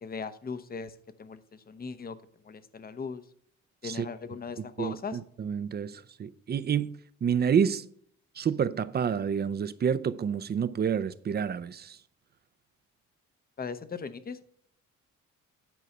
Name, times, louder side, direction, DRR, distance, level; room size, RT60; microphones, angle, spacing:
voice 1, 0.0-2.2 2.4-3.2 3.8-5.2 13.6-14.4, left 5 dB, 30° left, 0.8 m, -38 dB
voice 2, 4.8-7.9 8.4-12.0, right 7 dB, 35° right, 0.5 m, -29 dB
9.4 x 4.7 x 5.4 m
cardioid pair, 90°, 30 cm